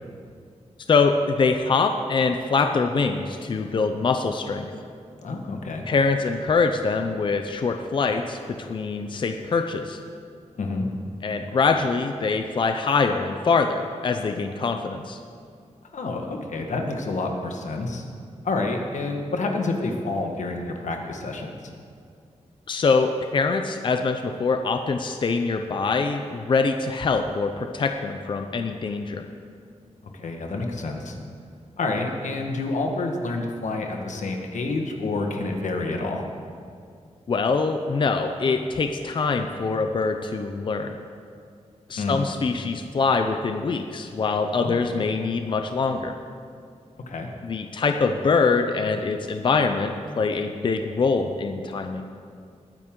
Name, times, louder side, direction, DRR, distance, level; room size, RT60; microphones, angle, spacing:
voice 1, 0.9-4.7 5.9-10.0 11.2-15.2 22.7-29.2 37.3-40.9 41.9-46.1 47.4-52.0, left 4 dB, 40° left, 6 dB, 0.5 m, -24 dB
voice 2, 5.2-5.8 10.5-10.9 15.9-18.1 18.4-21.6 30.1-31.2 31.8-36.2 41.9-42.2 44.6-44.8 47.1-47.3, left 3 dB, 90° left, 2 dB, 1.5 m, -28 dB
20.5 x 9.6 x 3.8 m, 2.3 s
wide cardioid pair, 180°, 12 cm